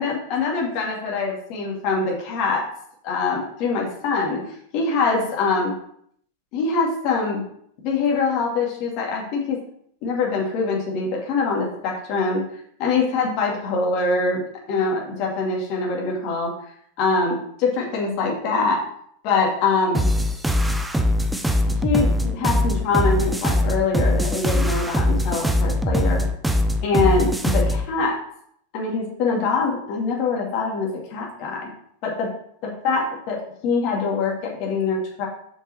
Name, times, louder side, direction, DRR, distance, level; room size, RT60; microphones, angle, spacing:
voice 1, 0.0-2.6 3.0-4.4 4.7-5.7 6.5-7.4 7.8-9.6 10.0-12.4 12.8-16.5 17.0-18.8 19.2-20.1 21.8-26.2 26.8-28.2 28.7-31.7 32.0-32.3 32.6-35.3, left 4 dB, 40° left, -2 dB, 2.4 m, -24 dB
sound 1, 19.9-27.9, left 1 dB, 5° right, 0.6 m, -21 dB
7.3 x 5.3 x 4.4 m, 0.67 s
figure-of-eight pair, 90°, 0 cm